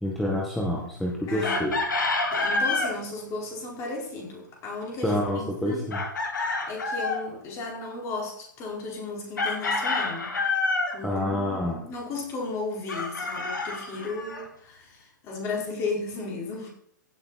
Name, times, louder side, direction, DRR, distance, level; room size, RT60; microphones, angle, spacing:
voice 1, 0.0-1.7 5.0-6.0 11.0-11.9, left 1 dB, ahead, -3 dB, 1.7 m, -27 dB
voice 2, 1.2-1.8 2.3-5.9 6.7-10.4 10.9-16.7, left 3 dB, 25° left, -2 dB, 5.1 m, -35 dB
Chicken rooster, 1.4-3.0 5.9-7.3 9.4-11.0 12.9-14.4, left 3 dB, 70° left, 2.4 m, -27 dB
16.0 x 7.7 x 4.3 m, 0.67 s
figure-of-eight pair, 115°, 11 cm